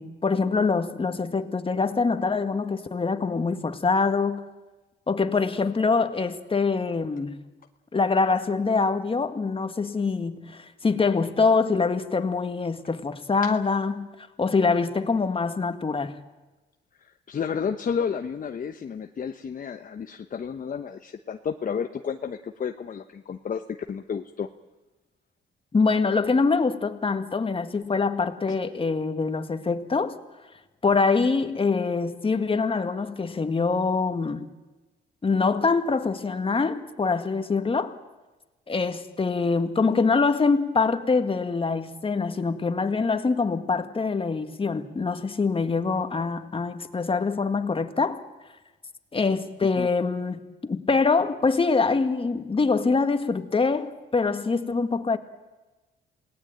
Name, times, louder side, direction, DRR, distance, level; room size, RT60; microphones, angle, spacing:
voice 1, 0.0-4.4 5.1-7.4 7.9-14.1 14.4-16.1 25.7-30.2 30.8-34.5 35.2-38.0 38.7-48.2 49.1-55.2, left 4 dB, 25° left, 1.9 m, -24 dB
voice 2, 17.0-23.6 23.9-24.5 28.5-28.6 49.7-49.9, left 7 dB, 45° left, 1.1 m, -31 dB
27.5 x 18.5 x 9.0 m
cardioid pair, 90°, 20 cm